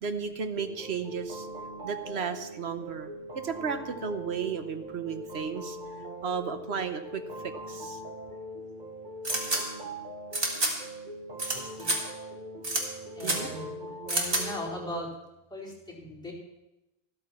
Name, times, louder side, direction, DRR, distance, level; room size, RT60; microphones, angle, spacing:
voice 1, 0.0-1.5 1.8-5.8 6.2-8.0 13.2-13.5 13.8-13.9, right 6 dB, 90° right, 8 dB, 1.3 m, -34 dB
sound 1, 0.5-15.0, right 1 dB, 45° right, 1.4 m, -42 dB
sound 2, 9.2-9.6 10.3-10.7 11.4-11.5 11.8-12.0 12.6-12.8 13.2-13.4 14.1-14.4, right 2 dB, 65° right, 2.3 m, -27 dB
voice 2, 11.5-12.0 13.2-13.6 14.1-15.1 15.5-16.3, left 1 dB, 5° left, -6 dB, 4.4 m, -38 dB
14.0 x 12.5 x 4.5 m, 0.95 s
omnidirectional pair, 1.0 m